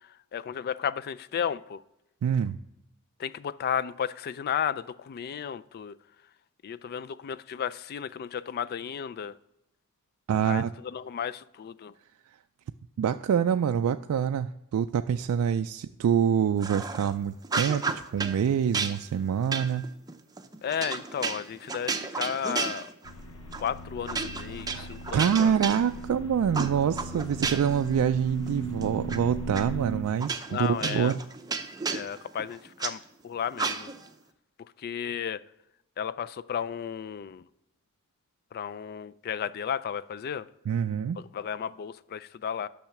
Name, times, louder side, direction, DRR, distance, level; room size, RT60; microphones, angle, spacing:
voice 1, 0.3-1.8 3.2-6.0 6.6-9.3 10.4-11.9 20.6-22.9 23.6-25.5 30.5-31.1 31.9-33.9 34.8-35.4 36.0-37.4 38.5-40.5 41.2-42.7, left 8 dB, 45° left, 0.3 m, -33 dB
voice 2, 2.2-2.6 10.3-10.7 13.0-19.9 24.7-31.2 40.7-41.2, right 8 dB, 80° right, 0.3 m, -26 dB
sound 1, 16.6-17.1 17.4-18.4 18.7-23.2 23.5-23.7 24.1-26.2 26.5-27.8 28.2-29.2 29.5-29.6 30.2-32.9 33.6-34.1, right 4 dB, 20° right, 0.5 m, -33 dB
sound 2, 23.0-30.0, right 2 dB, 75° left, 0.7 m, -38 dB
8.9 x 6.4 x 5.8 m
head